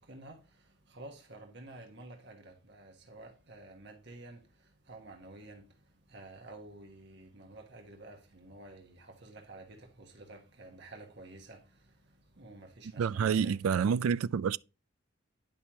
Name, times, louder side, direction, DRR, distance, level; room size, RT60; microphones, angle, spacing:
voice 1, 0.1-0.4 0.9-4.4 4.9-5.6 6.1-11.6 12.4-13.6, right 2 dB, 55° right, 1.3 m, -50 dB
voice 2, 13.0-14.6, right 7 dB, 85° right, 0.3 m, -28 dB
10.0 x 5.5 x 2.9 m
head